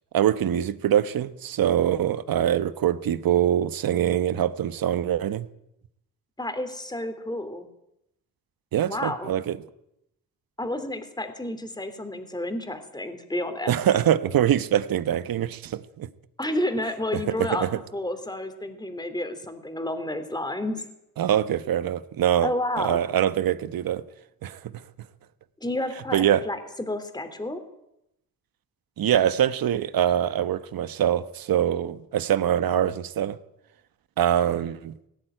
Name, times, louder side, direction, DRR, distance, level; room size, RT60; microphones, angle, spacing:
voice 1, 0.1-5.5 8.7-9.6 13.7-16.1 17.1-17.8 21.2-22.5 22.8-24.0 24.4-24.8 26.1-26.4 29.0-33.4 34.2-34.9, right 10 dB, 75° right, 1.1 m, -24 dB
voice 2, 6.4-7.7 8.9-9.4 10.6-13.7 16.4-17.7 17.9-20.9 22.4-23.1 25.6-27.6, left 1 dB, 10° left, 3.1 m, -30 dB
18.0 x 17.0 x 9.0 m
cardioid pair, 85°, 35 cm